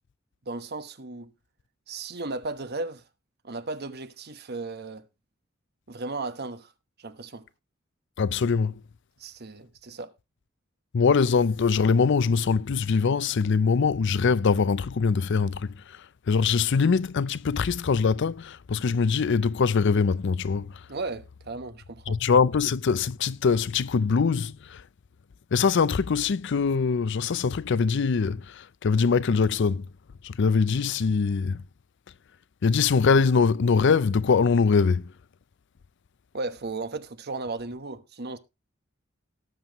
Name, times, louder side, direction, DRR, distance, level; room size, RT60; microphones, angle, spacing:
voice 1, 0.5-1.3 1.9-3.0 3.4-5.0 5.9-6.7 7.0-7.4 9.2-10.1 20.9-22.2 36.3-38.4, right 3 dB, 55° right, 1.2 m, -35 dB
voice 2, 8.2-8.8 10.9-20.8 22.1-24.8 25.5-29.9 30.2-31.6 32.6-35.1, left 5 dB, 60° left, 0.5 m, -23 dB
18.5 x 7.1 x 3.0 m
head